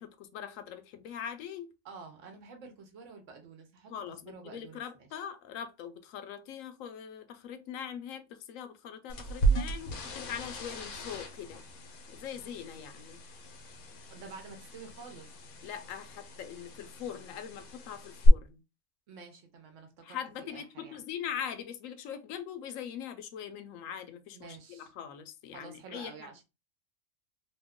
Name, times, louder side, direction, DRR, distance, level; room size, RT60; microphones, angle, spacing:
voice 1, 0.0-1.7 3.9-11.6 12.1-13.2 15.6-18.6 20.0-26.1, left 8 dB, 70° left, 0.9 m, -42 dB
voice 2, 1.8-5.2 14.1-15.3 19.1-21.0 24.3-24.9 25.5-26.4, right 4 dB, 65° right, 1.1 m, -49 dB
sound 1, 9.1-18.3, right 2 dB, 90° left, 1.2 m, -36 dB
2.9 x 2.2 x 3.5 m
omnidirectional pair, 1.5 m